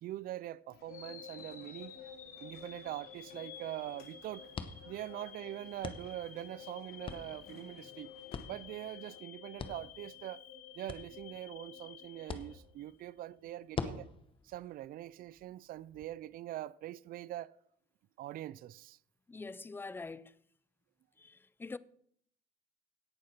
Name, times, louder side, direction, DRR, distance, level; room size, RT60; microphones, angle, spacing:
voice 1, 0.0-2.0 2.4-4.5 4.9-8.1 8.5-10.4 10.7-14.1 14.4-17.5 18.2-19.0, right 14 dB, 60° right, 0.4 m, -43 dB
sound 1, 0.7-9.2, left 8 dB, 70° left, 1.2 m, -60 dB
sound 2, 0.9-13.0, left 8 dB, 50° left, 2.1 m, -51 dB
sound 3, 1.9-16.1, left 5 dB, 30° left, 1.0 m, -48 dB
voice 2, 19.3-20.4 21.2-21.8, left 3 dB, 10° left, 0.4 m, -44 dB
17.5 x 6.4 x 4.4 m
cardioid pair, 110°, 17 cm